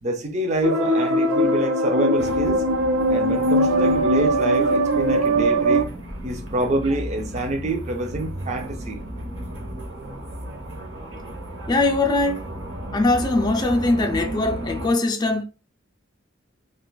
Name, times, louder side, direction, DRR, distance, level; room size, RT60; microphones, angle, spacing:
voice 1, 0.0-2.7 3.1-5.9 6.2-9.0, right 1 dB, 35° right, 0.5 m, -26 dB
sound 1, 0.6-5.8, right 1 dB, 85° right, 0.6 m, -20 dB
sound 2, 2.2-14.9, right 1 dB, 60° right, 0.8 m, -34 dB
voice 2, 11.7-12.5 12.9-15.4, left 2 dB, 20° left, 0.4 m, -21 dB
2.5 x 2.3 x 3.8 m
head